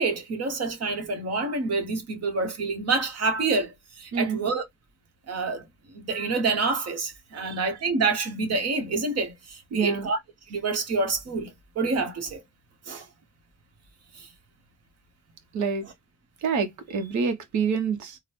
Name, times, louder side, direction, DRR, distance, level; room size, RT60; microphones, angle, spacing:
voice 1, 0.0-4.6 5.3-5.6 5.9-10.2 10.5-12.4 12.9-13.0 14.1-14.3, right 3 dB, 55° right, 1.4 m, -27 dB
voice 2, 4.1-4.4 7.3-7.6 9.7-10.1 15.5-15.9 16.4-18.2, right 5 dB, 70° right, 1.0 m, -27 dB
3.8 x 2.3 x 3.1 m
cardioid pair, 90°, 30 cm